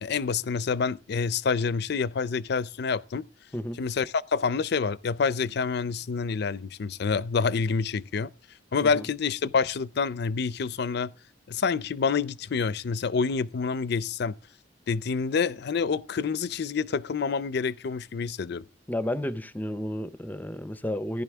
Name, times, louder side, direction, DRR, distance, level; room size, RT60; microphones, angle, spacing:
voice 1, 0.0-3.3 3.8-8.3 8.7-11.1 11.5-14.4 14.9-18.6, left 5 dB, 60° left, 0.5 m, -27 dB
voice 2, 18.9-21.2, left 1 dB, 10° left, 0.5 m, -32 dB
14.5 x 10.5 x 3.5 m
head